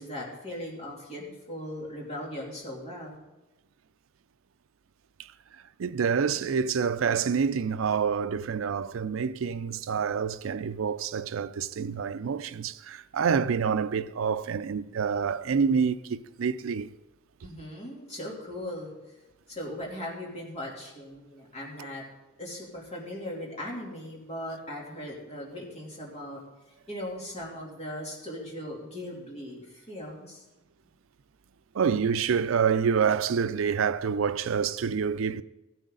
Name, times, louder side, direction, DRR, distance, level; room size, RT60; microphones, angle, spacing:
voice 1, 0.0-3.2 17.4-19.1 19.5-22.0 22.4-26.4 26.9-30.4, left 1 dB, 30° left, 3.0 m, -39 dB
voice 2, 5.8-16.9 31.7-35.4, right 6 dB, 70° right, 0.4 m, -27 dB
15.5 x 10.5 x 3.9 m
head